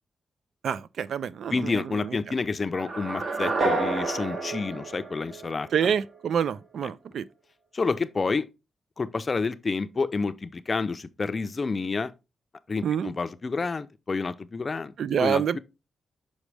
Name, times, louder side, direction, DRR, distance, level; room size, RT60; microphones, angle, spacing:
voice 1, 0.6-2.2 5.7-7.2 12.8-13.1 15.0-15.6, right 8 dB, 75° right, 0.3 m, -27 dB
voice 2, 1.5-5.9 7.7-8.5 9.0-12.1 12.7-14.9 15.2-15.6, left 4 dB, 30° left, 0.5 m, -29 dB
sound 1, 2.7-5.8, right 3 dB, 50° right, 1.2 m, -29 dB
6.2 x 5.2 x 3.3 m
wide cardioid pair, 140°, 0 cm